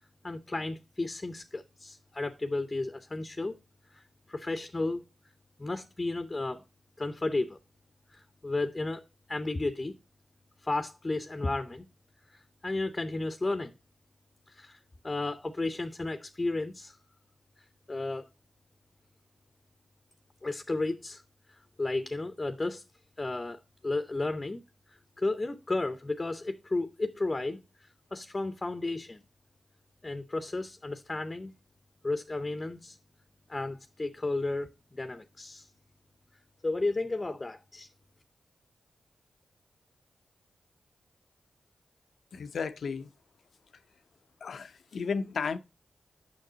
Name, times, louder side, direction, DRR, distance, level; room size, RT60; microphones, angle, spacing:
voice 1, 0.2-3.6 3.9-4.0 4.3-5.0 5.6-6.6 7.0-7.6 8.1-9.0 9.3-9.9 10.6-11.9 12.3-13.8 14.5-14.8 15.0-17.0 17.9-18.3 20.4-21.2 21.5-22.8 23.2-24.6 24.9-29.2 30.0-31.5 32.0-33.0 33.5-35.7 36.6-37.9, left 2 dB, 30° left, 0.6 m, -33 dB
voice 2, 42.3-43.1 44.4-45.6, left 5 dB, 75° left, 0.5 m, -33 dB
6.6 x 5.8 x 3.8 m
cardioid pair, 50°, 0 cm